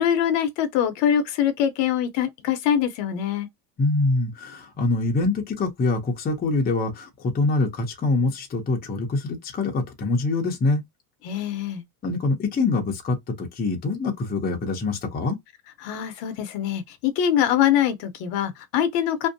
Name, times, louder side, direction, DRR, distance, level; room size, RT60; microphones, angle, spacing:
voice 1, 0.0-3.5 11.2-11.8 15.8-19.3, left 9 dB, 60° left, 0.8 m, -23 dB
voice 2, 3.8-10.8 12.0-15.4, left 3 dB, 20° left, 0.6 m, -24 dB
2.6 x 2.1 x 2.6 m
supercardioid pair, 125°, 50 cm